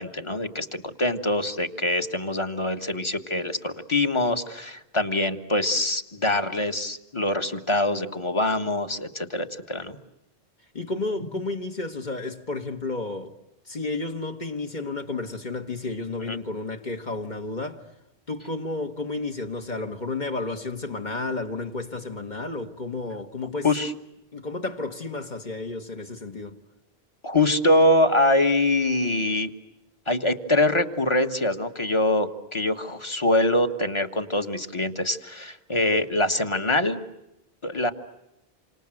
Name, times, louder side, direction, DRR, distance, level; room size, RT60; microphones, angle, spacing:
voice 1, 0.0-10.0 16.3-16.4 23.6-23.9 27.2-29.5 30.1-37.0 37.6-37.9, left 1 dB, 30° left, 1.5 m, -24 dB
voice 2, 10.7-13.3 13.6-17.8 18.3-23.7 24.3-26.6, left 3 dB, 45° left, 1.8 m, -32 dB
28.5 x 25.5 x 7.8 m
omnidirectional pair, 1.0 m